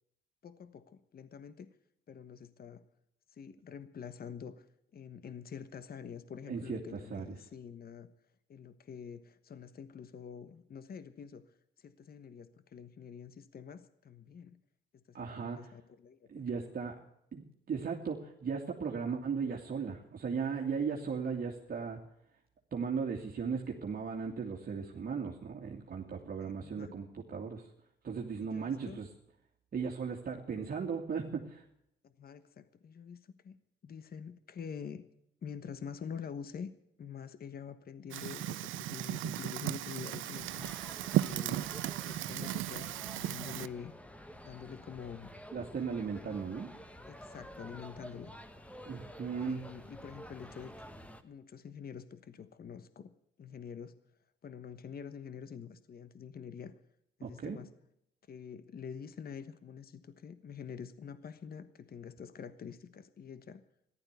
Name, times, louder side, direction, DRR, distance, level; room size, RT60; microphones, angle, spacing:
voice 1, 0.4-1.7 2.1-2.8 3.3-4.7 4.9-8.1 8.5-14.6 14.9-16.7 26.4-26.9 28.4-29.0 32.0-33.5 33.8-35.1 35.4-36.7 37.0-40.7 41.2-41.7 42.0-43.9 44.4-45.3 46.3-46.4 47.1-48.3 49.4-51.0 51.2-53.1 53.4-54.0 54.4-56.7 57.2-57.7 58.3-63.6, left 7 dB, 50° left, 13 dB, 1.2 m, -46 dB
voice 2, 6.5-6.8 7.1-7.2 15.1-15.7 16.3-17.0 17.3-22.0 22.7-27.7 28.0-29.1 29.7-31.6 45.5-46.7 48.9-49.7 57.2-57.6, right 6 dB, 45° right, 0 dB, 2.4 m, -37 dB
Fire, 38.1-43.7, right 14 dB, 80° right, 0.6 m, -35 dB
sound 1, 40.3-51.2, equal, 5° left, 1.5 m, -50 dB
14.5 x 12.0 x 8.2 m, 0.76 s
cardioid pair, 90°, 20 cm